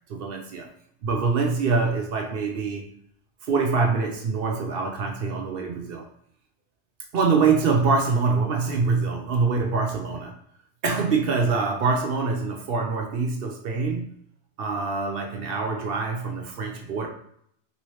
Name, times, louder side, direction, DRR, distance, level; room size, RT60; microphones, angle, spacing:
voice 1, 0.1-0.7 1.0-2.8 3.4-6.0 7.1-10.3 10.8-14.1 14.6-17.1, right 4 dB, 60° right, 1 dB, 0.7 m, -24 dB
3.0 x 2.9 x 3.1 m, 0.69 s
omnidirectional pair, 1.2 m